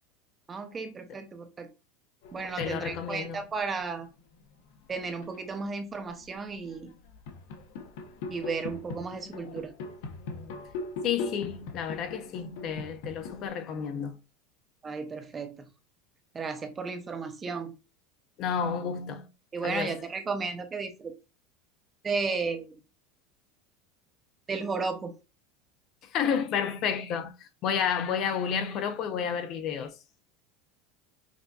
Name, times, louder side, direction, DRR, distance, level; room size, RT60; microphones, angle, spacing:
voice 1, 0.5-1.7 2.3-4.1 4.9-6.9 8.3-9.7 14.8-15.6 16.3-17.7 19.5-21.2 22.0-22.8 24.5-25.1, right 4 dB, 20° right, 0.6 m, -34 dB
sound 1, 2.2-3.5 4.4-5.5 6.0-13.5, left 3 dB, 75° left, 0.9 m, -40 dB
voice 2, 2.6-3.5 11.0-14.2 18.4-19.3 19.6-20.0 26.0-30.0, left 7 dB, 45° left, 0.5 m, -31 dB
6.0 x 2.6 x 2.3 m
supercardioid pair, 140°, 0 cm